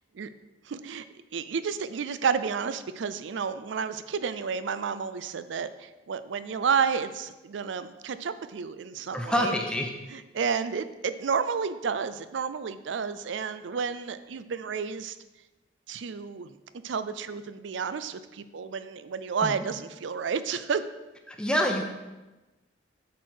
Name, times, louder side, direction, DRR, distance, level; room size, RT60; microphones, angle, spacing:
voice 1, 0.7-1.0 1.3-9.6 10.1-15.2 15.9-16.5 16.8-20.8, right 6 dB, 80° right, 12 dB, 0.4 m, -31 dB
voice 2, 9.1-9.9 19.4-19.7 21.3-21.8, left 1 dB, 5° left, 2 dB, 0.9 m, -27 dB
8.2 x 4.6 x 6.3 m, 1.1 s
head